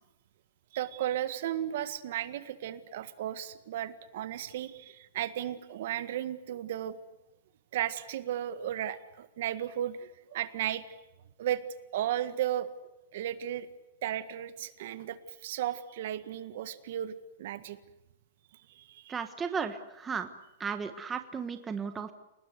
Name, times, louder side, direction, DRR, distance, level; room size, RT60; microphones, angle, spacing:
voice 1, 0.7-7.0 7.7-10.8 11.4-11.6 11.9-12.7 13.1-13.7 14.0-17.8 18.7-19.2, right 11 dB, 55° right, 12 dB, 1.7 m, -34 dB
voice 2, 19.1-20.3 20.6-22.1, right 6 dB, 10° right, 8 dB, 1.3 m, -35 dB
29.0 x 19.5 x 8.1 m, 0.95 s
supercardioid pair, 160°, 0 cm